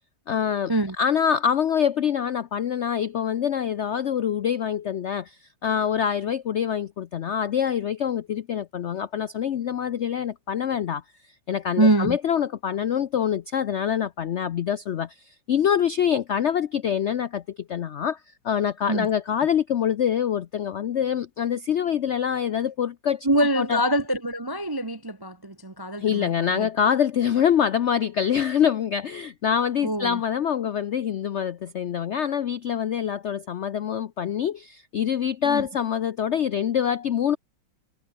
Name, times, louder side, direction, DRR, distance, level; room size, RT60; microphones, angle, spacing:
voice 1, 0.3-11.0 11.5-23.3 23.6-23.8 26.0-37.4, left 8 dB, 85° left, 0.6 m, -25 dB
voice 2, 11.8-12.2 18.9-19.1 23.2-26.7 29.8-30.2 35.4-35.7, right 1 dB, 25° right, 0.5 m, -24 dB
omnidirectional pair, 2.0 m